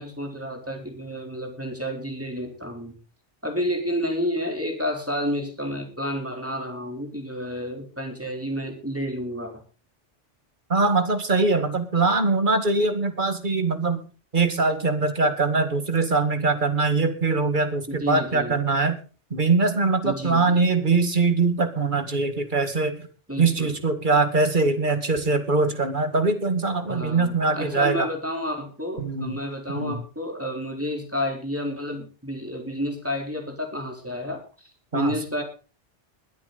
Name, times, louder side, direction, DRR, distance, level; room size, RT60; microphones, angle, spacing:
voice 1, 0.0-2.9 3.4-9.6 17.9-18.5 20.0-20.7 23.3-23.8 26.9-35.4, equal, 10° right, 2 dB, 3.9 m, -30 dB
voice 2, 10.7-14.0 14.3-19.0 19.3-23.1 23.4-28.1 29.0-29.4 29.8-30.0 34.9-35.1, right 3 dB, 45° right, 9 dB, 2.0 m, -22 dB
21.5 x 8.7 x 4.1 m, 0.36 s
omnidirectional pair, 1.2 m